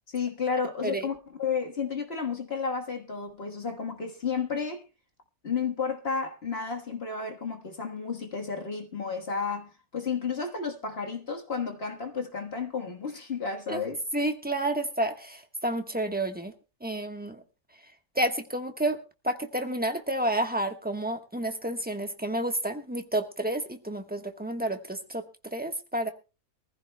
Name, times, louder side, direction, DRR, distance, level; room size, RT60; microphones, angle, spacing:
voice 1, 0.1-4.8 5.4-14.0, left 5 dB, 45° left, 1.6 m, -32 dB
voice 2, 14.1-16.5 16.8-17.4 18.1-19.0 19.2-25.2 25.5-26.1, right 1 dB, 5° right, 1.1 m, -30 dB
24.0 x 15.0 x 2.2 m
omnidirectional pair, 1.5 m